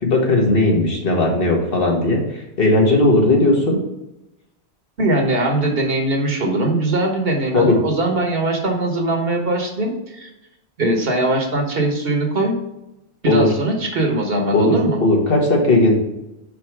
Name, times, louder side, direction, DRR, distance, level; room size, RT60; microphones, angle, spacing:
voice 1, 0.0-3.8 7.5-7.7 13.3-13.5 14.5-14.7 15.0-15.9, left 2 dB, 60° left, 0 dB, 1.6 m, -16 dB
voice 2, 5.0-10.3 10.8-12.5 13.2-15.0, right 1 dB, 65° right, 2 dB, 1.4 m, -20 dB
5.4 x 4.3 x 4.7 m, 0.92 s
omnidirectional pair, 1.1 m